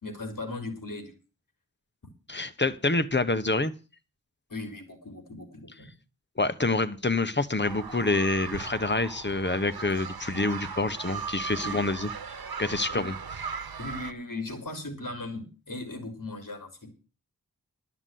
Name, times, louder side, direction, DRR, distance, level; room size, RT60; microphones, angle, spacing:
voice 1, 0.0-1.1 4.5-5.9 11.6-11.8 12.9-13.1 13.8-16.9, left 2 dB, 65° left, 4.1 m, -38 dB
voice 2, 2.3-3.7 6.4-12.1 12.6-13.1, left 2 dB, 30° left, 1.2 m, -27 dB
sound 1, 7.6-14.1, right 6 dB, 85° right, 1.0 m, -38 dB
12.5 x 6.0 x 9.3 m
wide cardioid pair, 50°, 36 cm